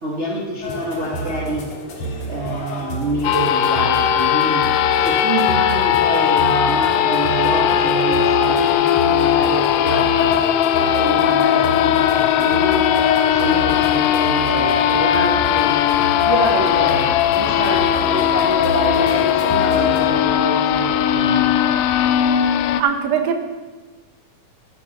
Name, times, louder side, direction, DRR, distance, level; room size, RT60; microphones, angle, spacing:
voice 1, 0.0-1.8 2.2-4.7 5.0-10.4 10.8-13.0 13.3-15.9 16.2-21.6, right 1 dB, 90° right, -2 dB, 0.6 m, -26 dB
sound 1, 0.6-20.1, equal, 50° left, 2.4 m, -30 dB
sound 2, 3.2-22.8, left 10 dB, 80° left, 1.6 m, -18 dB
voice 2, 22.8-23.4, right 8 dB, 65° right, 7 dB, 1.8 m, -20 dB
11.0 x 7.0 x 6.8 m, 1.3 s
omnidirectional pair, 3.5 m